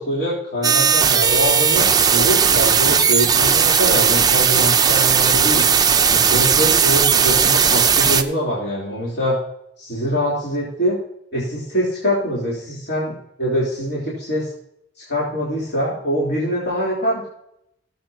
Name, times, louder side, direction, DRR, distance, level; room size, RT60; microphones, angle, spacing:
voice 1, 0.0-5.6 6.1-9.4 9.8-11.0 11.3-14.5 15.0-17.3, equal, 55° left, -7 dB, 3.5 m, -24 dB
sound 1, 0.6-8.2, right 7 dB, 20° right, 0.5 m, -16 dB
17.0 x 7.9 x 2.8 m, 0.76 s
head